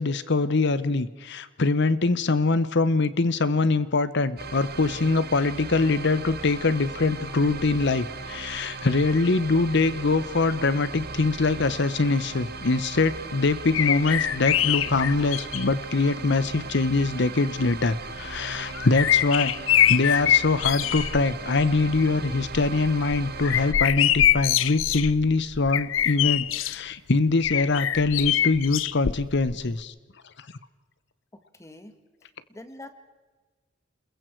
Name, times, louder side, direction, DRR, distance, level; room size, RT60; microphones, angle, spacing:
voice 1, 0.0-19.5 19.9-29.9, left 3 dB, 60° left, 15 dB, 0.9 m, -23 dB
sound 1, 4.4-23.7, right 4 dB, 55° right, 1.5 m, -38 dB
sound 2, 13.7-15.8 16.6-16.7 18.3-21.2 21.6-22.0 22.4-26.8 27.4-29.5 29.8-29.9, left 11 dB, 85° left, 0.6 m, -24 dB
voice 2, 31.3-31.9 32.5-32.9, left 1 dB, 15° left, 9 dB, 1.8 m, -44 dB
29.0 x 21.5 x 4.6 m, 1.3 s
head